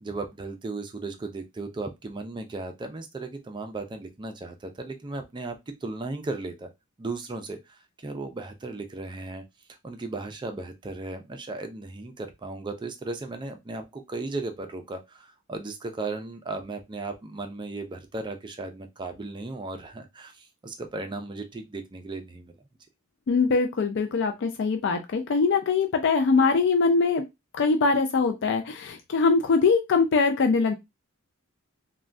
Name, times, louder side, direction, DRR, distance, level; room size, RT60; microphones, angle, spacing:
voice 1, 0.0-6.7 7.0-9.4 9.8-22.5, right 3 dB, 20° right, 6 dB, 0.4 m, -36 dB
voice 2, 23.3-27.2 27.5-30.7, left 4 dB, 55° left, 5 dB, 0.4 m, -22 dB
3.3 x 2.2 x 2.5 m, 0.21 s
head